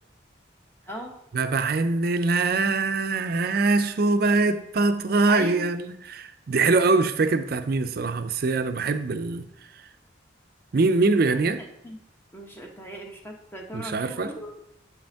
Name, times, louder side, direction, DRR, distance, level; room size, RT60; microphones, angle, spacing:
voice 1, 1.3-9.5 10.7-11.6 13.7-14.3, right 3 dB, 50° right, 0.4 m, -23 dB
voice 2, 5.3-5.7 11.6-12.0 12.3-14.6, equal, 10° left, 0.8 m, -38 dB
7.8 x 5.2 x 3.4 m
head